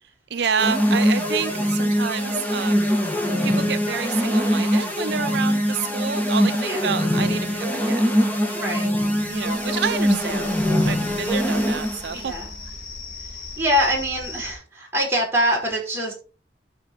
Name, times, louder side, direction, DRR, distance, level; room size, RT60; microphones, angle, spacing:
voice 1, 0.3-2.9 3.4-8.0 9.3-10.5 10.9-12.3, right 7 dB, 65° right, 0.5 m, -29 dB
sound 1, 0.6-12.1, equal, 10° left, 1.8 m, -22 dB
voice 2, 8.5-8.9 12.1-12.5 13.6-16.1, equal, 15° right, 5.4 m, -24 dB
sound 2, 9.1-14.5, left 3 dB, 50° left, 3.7 m, -39 dB
13.0 x 5.8 x 4.7 m
head